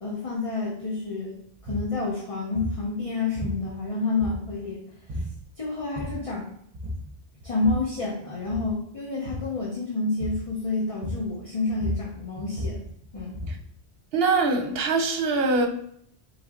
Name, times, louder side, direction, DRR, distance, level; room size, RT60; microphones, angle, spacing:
voice 1, 0.0-4.8 5.1-5.2 5.6-6.5 7.4-12.8 13.1-13.4, left 3 dB, 35° left, 0.9 m, -29 dB
sound 1, 1.6-1.9 2.5-2.8 3.3-3.9 4.2-4.7 5.1-5.4 5.8-6.3 6.7-7.1 7.4-8.0 8.4-8.8 9.2-9.6 10.2-10.5 11.0-11.4 11.7-13.7, equal, 45° right, 1.1 m, -34 dB
voice 2, 14.1-15.7, right 3 dB, 65° right, 1.0 m, -23 dB
4.1 x 3.4 x 3.7 m
omnidirectional pair, 1.1 m